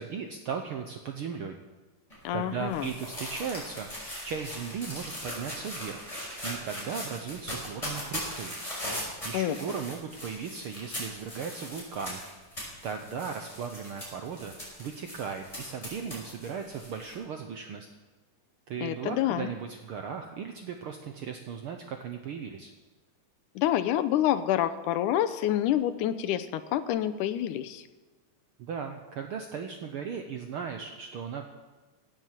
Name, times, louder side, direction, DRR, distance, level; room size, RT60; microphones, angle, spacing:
voice 1, 0.0-1.6 2.3-6.1 6.4-8.5 9.2-12.2 12.8-17.9 18.7-22.7 28.6-31.5, right 6 dB, 70° right, 5 dB, 1.3 m, -37 dB
sound 1, 2.1-17.1, equal, 10° left, 5.7 m, -39 dB
voice 2, 2.2-2.9 9.3-9.6 18.8-19.5 23.6-27.8, left 12 dB, 85° left, 10 dB, 2.3 m, -27 dB
17.0 x 7.9 x 7.5 m, 1.2 s
omnidirectional pair, 3.5 m